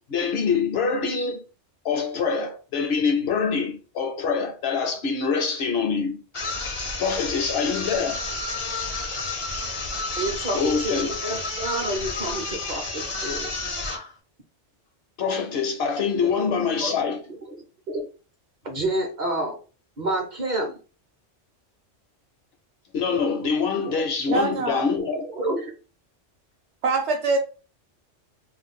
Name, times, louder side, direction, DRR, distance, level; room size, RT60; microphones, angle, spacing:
voice 1, 0.0-1.4 1.8-6.2 6.8-8.2 10.5-11.1 15.2-17.2 22.9-25.3, left 5 dB, 65° left, 0.8 m, -25 dB
sound 1, 6.3-14.1, left 3 dB, 40° left, 0.5 m, -31 dB
voice 2, 10.2-13.5 16.2-16.9 17.5-17.6 17.9-18.0 18.6-19.6 20.0-20.8 23.8-24.0 24.3-24.4 25.0-25.7, right 1 dB, 45° right, 0.7 m, -29 dB
voice 3, 24.3-24.9 26.8-27.4, right 3 dB, 70° right, 1.0 m, -24 dB
2.5 x 2.2 x 3.6 m
omnidirectional pair, 1.2 m